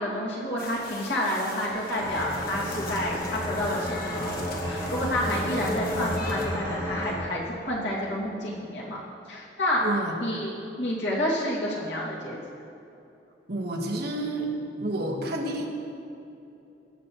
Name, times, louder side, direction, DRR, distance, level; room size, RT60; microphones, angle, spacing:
voice 1, 0.0-9.0 9.3-9.8 10.2-10.5 10.8-12.4, left 1 dB, 85° left, -5 dB, 2.3 m, -29 dB
sound 1, 0.6-6.5, left 2 dB, 55° left, 1.2 m, -40 dB
sound 2, 2.0-7.1, left 1 dB, 25° left, 2.4 m, -31 dB
voice 2, 9.8-10.2 13.5-14.5 14.8-15.7, right 1 dB, 60° right, 0 dB, 1.3 m, -29 dB
18.0 x 6.7 x 3.0 m, 2.8 s
head